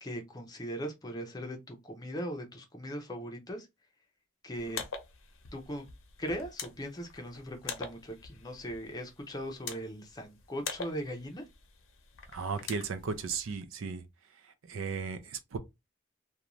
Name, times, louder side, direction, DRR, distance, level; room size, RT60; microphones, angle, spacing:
voice 1, 0.0-3.7 4.4-4.8 5.5-5.9 6.2-11.4, equal, 20° left, 0.6 m, -39 dB
sound 1, 4.5-13.5, left 5 dB, 90° left, 0.6 m, -45 dB
voice 2, 12.3-14.0 14.7-15.6, right 5 dB, 85° right, 0.5 m, -35 dB
2.5 x 2.2 x 3.0 m
head